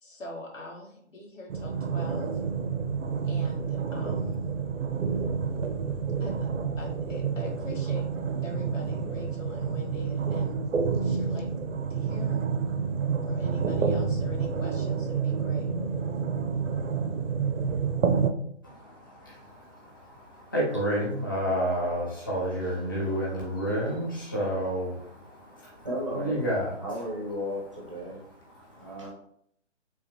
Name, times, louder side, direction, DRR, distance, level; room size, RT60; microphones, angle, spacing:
voice 1, 0.0-2.4 3.2-4.5 6.2-8.1 8.4-10.6 11.0-11.5 11.9-12.4 13.3-15.7, left 2 dB, 90° left, 0 dB, 1.3 m, -42 dB
sound 1, 1.5-18.3, right 6 dB, 85° right, 0.6 m, -29 dB
voice 2, 18.6-26.7 28.5-29.1, equal, 20° left, -6 dB, 0.7 m, -31 dB
voice 3, 25.8-26.4 26.8-28.2 28.8-29.1, equal, 25° right, -3 dB, 0.6 m, -34 dB
3.3 x 2.8 x 3.2 m, 0.67 s
hypercardioid pair, 170°, 37 cm